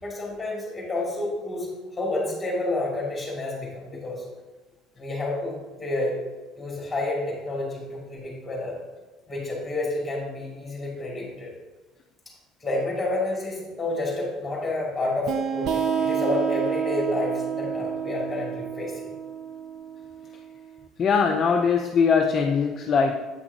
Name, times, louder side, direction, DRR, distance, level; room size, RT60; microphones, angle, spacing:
voice 1, 0.0-1.7 2.0-4.2 5.0-6.2 6.6-8.8 9.3-11.5 12.6-19.1, left 2 dB, 10° left, -2 dB, 2.1 m, -29 dB
sound 1, 15.3-20.6, right 7 dB, 60° right, 0.4 m, -29 dB
voice 2, 21.0-23.1, left 5 dB, 35° left, 3 dB, 0.4 m, -21 dB
8.0 x 5.8 x 2.7 m, 1.2 s
cardioid pair, 130°, 0 cm